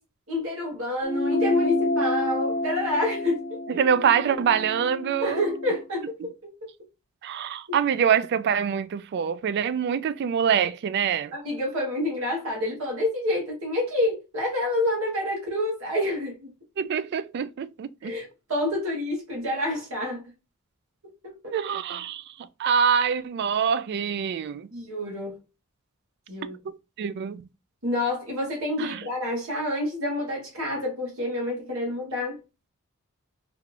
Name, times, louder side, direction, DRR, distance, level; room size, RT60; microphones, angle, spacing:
voice 1, 0.3-3.8 5.2-6.0 7.7-7.8 11.3-16.5 18.0-20.2 21.0-21.5 24.7-25.4 26.3-26.6 27.8-32.4, left 1 dB, 70° right, 1.4 m, -28 dB
sound 1, 1.0-5.8, left 2 dB, 30° left, 0.4 m, -28 dB
voice 2, 3.7-5.4 6.2-6.3 7.2-11.3 16.8-18.1 21.5-24.7 26.6-27.4 28.8-29.0, right 7 dB, 50° right, 0.3 m, -25 dB
3.3 x 2.5 x 3.2 m
head